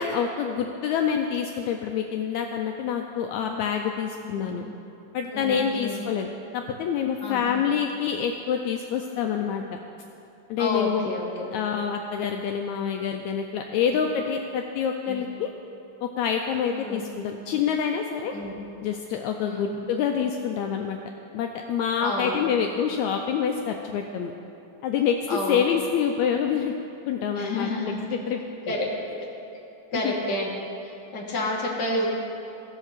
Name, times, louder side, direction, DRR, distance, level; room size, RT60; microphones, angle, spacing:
voice 1, 0.0-4.7 5.1-9.6 10.5-11.1 11.5-15.5 16.0-18.4 18.8-21.0 21.3-24.3 24.8-25.1 25.5-26.7 27.1-28.4 29.9-30.1, left 7 dB, 85° left, 3 dB, 1.6 m, -27 dB
voice 2, 5.3-6.0 7.2-7.6 10.6-11.5 13.7-14.0 15.1-15.2 16.7-17.0 18.3-18.5 19.4-19.8 22.0-22.7 25.3-25.6 27.3-28.1 28.7-28.9 29.9-30.5 30.8-32.1, left 1 dB, 55° left, -3 dB, 1.1 m, -30 dB
15.5 x 5.3 x 6.5 m, 2.8 s
omnidirectional pair, 3.8 m